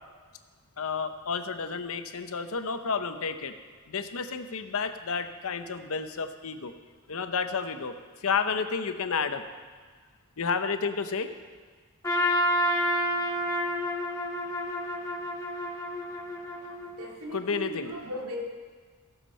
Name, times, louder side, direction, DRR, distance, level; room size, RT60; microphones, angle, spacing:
voice 1, 0.8-3.5 3.9-6.7 7.1-9.4 10.4-11.3 17.3-18.1, left 5 dB, 70° left, 9 dB, 0.8 m, -31 dB
Trumpet, 12.0-17.1, equal, 15° left, 1.6 m, -29 dB
voice 2, 17.0-18.4, equal, 90° right, -1 dB, 2.2 m, -37 dB
15.5 x 7.4 x 5.5 m, 1.5 s
head